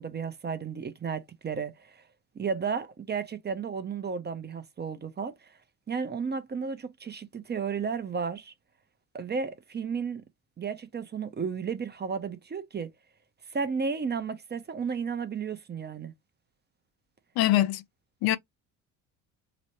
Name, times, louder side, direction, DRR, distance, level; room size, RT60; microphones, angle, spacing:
voice 1, 0.0-2.0 2.3-5.5 5.9-8.5 9.1-10.2 10.6-12.9 13.5-16.1, right 5 dB, 25° right, 0.6 m, -33 dB
voice 2, 17.4-17.8 18.2-18.4, left 14 dB, 65° left, 0.6 m, -23 dB
3.0 x 2.0 x 2.9 m
hypercardioid pair, 65°, 40 cm